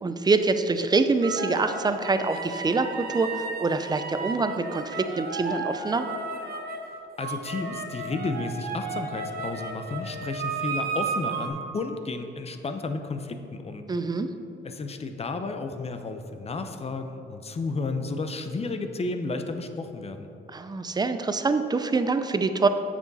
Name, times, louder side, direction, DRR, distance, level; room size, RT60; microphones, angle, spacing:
voice 1, 0.0-6.1 13.9-14.3 20.5-22.7, right 3 dB, 20° right, 9 dB, 0.5 m, -25 dB
sound 1, 1.2-6.8 7.2-11.5, right 4 dB, 50° right, 1.2 m, -34 dB
voice 2, 7.2-13.8 14.6-20.3, left 3 dB, 30° left, 7 dB, 0.7 m, -32 dB
8.5 x 6.1 x 4.1 m, 2.9 s
cardioid pair, 90°, 20 cm